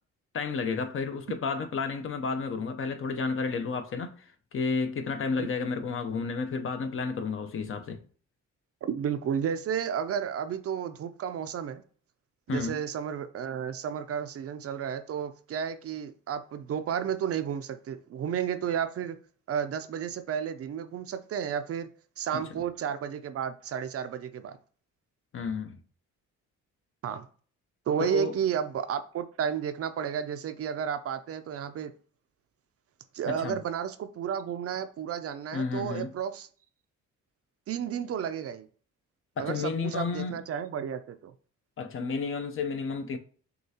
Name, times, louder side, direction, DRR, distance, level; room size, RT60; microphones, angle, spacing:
voice 1, 0.3-8.0 12.5-12.8 22.3-22.4 25.3-25.8 28.1-28.4 33.3-33.6 35.5-36.1 39.4-40.4 41.8-43.2, left 4 dB, 45° left, 0.6 m, -31 dB
voice 2, 8.8-11.8 12.5-19.2 19.5-21.9 22.2-24.6 27.0-27.3 27.9-31.9 33.1-36.5 37.7-38.7 39.4-41.3, right 8 dB, 50° right, 0.5 m, -32 dB
6.5 x 2.4 x 2.8 m
cardioid pair, 90°, 30 cm